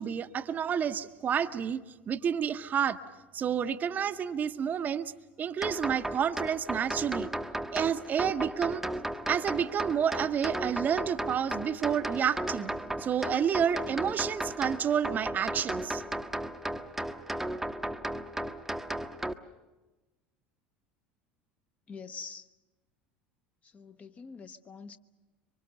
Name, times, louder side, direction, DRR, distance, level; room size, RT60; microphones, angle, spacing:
voice 1, 0.0-3.0 3.3-5.1 5.4-7.3 7.7-8.8 9.3-12.7 13.0-16.0, right 8 dB, 30° right, 10 dB, 0.9 m, -30 dB
sound 1, 5.6-19.3, right 1 dB, 5° right, 0.9 m, -35 dB
voice 2, 21.9-22.5 23.6-25.0, left 5 dB, 25° left, 9 dB, 0.9 m, -45 dB
25.5 x 24.5 x 6.7 m, 1.1 s
figure-of-eight pair, 70°, 5 cm